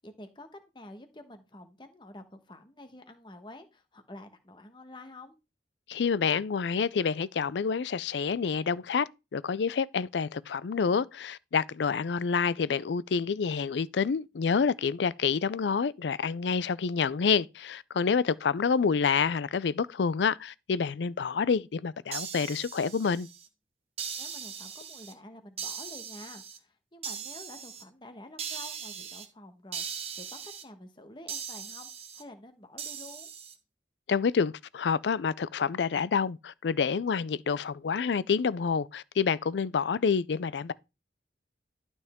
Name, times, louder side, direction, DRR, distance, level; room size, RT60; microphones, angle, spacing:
voice 1, 0.0-5.4 24.2-29.8 30.1-33.3, left 1 dB, 25° left, 1.3 m, -49 dB
voice 2, 5.9-23.3 34.1-40.7, left 5 dB, 80° left, 0.4 m, -28 dB
sound 1, 22.1-23.5 24.0-25.1 25.6-26.6 27.0-27.8 28.4-29.3 29.7-30.6 31.3-32.2 32.8-33.5, right 7 dB, 35° right, 1.3 m, -39 dB
12.0 x 5.4 x 3.6 m
head